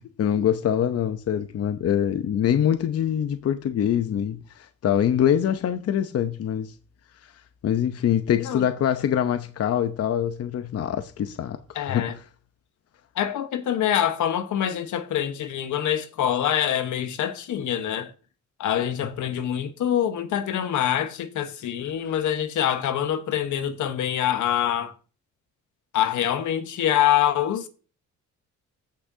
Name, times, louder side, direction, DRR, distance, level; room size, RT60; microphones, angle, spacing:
voice 1, 0.0-6.7 7.6-12.2, left 9 dB, 55° left, 0.7 m, -24 dB
voice 2, 11.7-12.2 13.1-18.1 18.6-24.9 25.9-27.7, left 10 dB, 75° left, 1.2 m, -25 dB
14.5 x 6.0 x 2.7 m
cardioid pair, 90°, 30 cm